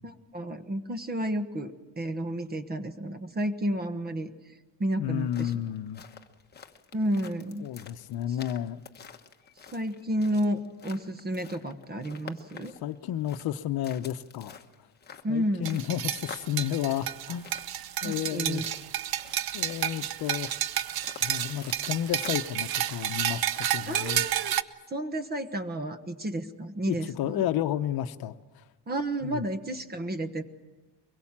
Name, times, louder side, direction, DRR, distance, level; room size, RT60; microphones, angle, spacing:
voice 1, 0.0-4.3 4.8-5.5 6.9-7.6 9.7-12.7 15.2-15.8 18.0-18.6 23.9-24.5 24.9-27.4 28.9-30.4, right 1 dB, 20° right, 10 dB, 1.2 m, -31 dB
voice 2, 5.0-6.0 7.6-8.8 12.8-14.6 15.3-17.5 18.0-18.6 19.5-20.5 21.2-24.2 26.9-28.6 29.2-29.4, left 11 dB, 60° left, 10 dB, 0.9 m, -32 dB
sound 1, 5.1-22.5, left 7 dB, 25° left, 1.2 m, -49 dB
sound 2, 15.6-24.6, right 12 dB, 60° right, 0.8 m, -31 dB
23.5 x 22.0 x 7.4 m, 1.2 s
cardioid pair, 155°, 42 cm